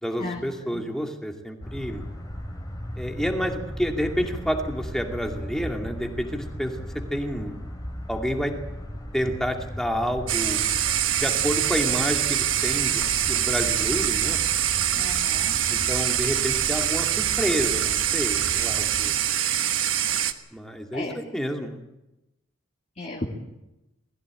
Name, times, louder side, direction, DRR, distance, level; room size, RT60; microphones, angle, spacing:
voice 1, 0.0-2.0 3.0-7.6 8.1-8.6 9.1-10.6 11.2-14.4 15.7-19.1 20.5-21.8, equal, 5° left, 2 dB, 2.4 m, -29 dB
sound 1, 1.6-19.1, equal, 20° left, 3.1 m, -37 dB
sound 2, 10.3-20.3, right 11 dB, 70° right, 1.3 m, -24 dB
voice 2, 14.9-15.5 20.9-21.1 23.0-23.3, left 2 dB, 35° left, -1 dB, 2.5 m, -34 dB
21.0 x 15.5 x 9.0 m, 0.96 s
head